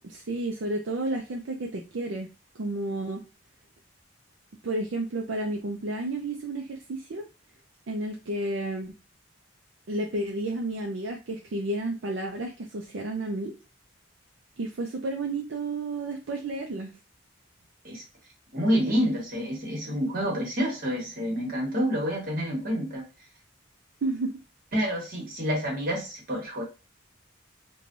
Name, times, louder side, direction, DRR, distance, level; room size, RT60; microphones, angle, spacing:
voice 1, 0.0-2.3 2.5-3.2 4.6-7.2 7.9-8.9 9.9-13.5 14.6-16.9 24.0-24.3, right 2 dB, 65° right, 1 dB, 0.5 m, -31 dB
voice 2, 18.5-23.0 24.7-26.6, equal, 45° right, -1 dB, 1.3 m, -28 dB
3.2 x 2.2 x 2.5 m, 0.29 s
head